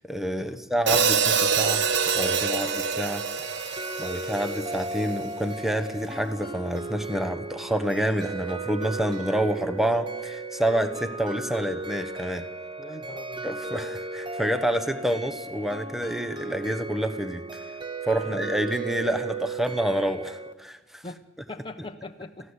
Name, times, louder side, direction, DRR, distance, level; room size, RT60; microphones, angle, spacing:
voice 1, 0.0-1.8 2.1-3.2 4.0-12.5 13.4-17.7 18.1-21.0, right 1 dB, ahead, 8 dB, 1.2 m, -28 dB
Hi-hat, 0.9-5.0, right 6 dB, 60° right, 1.2 m, -25 dB
sound 1, 1.3-20.5, right 3 dB, 25° right, 1.2 m, -36 dB
voice 2, 12.8-13.5 18.2-18.4 21.0-22.5, left 2 dB, 25° left, 4 dB, 1.0 m, -41 dB
28.5 x 15.5 x 8.1 m, 1.1 s
head